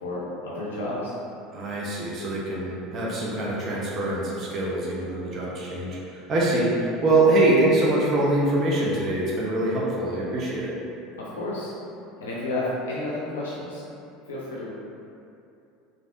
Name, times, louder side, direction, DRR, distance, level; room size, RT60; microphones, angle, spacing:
voice 1, 0.0-1.2 11.2-11.7 12.2-13.8 14.3-14.7, left 2 dB, 75° left, -6 dB, 0.5 m, -31 dB
voice 2, 1.5-10.7, right 2 dB, 40° right, -5 dB, 0.5 m, -24 dB
3.3 x 2.5 x 2.5 m, 2.7 s
figure-of-eight pair, 70°, 0 cm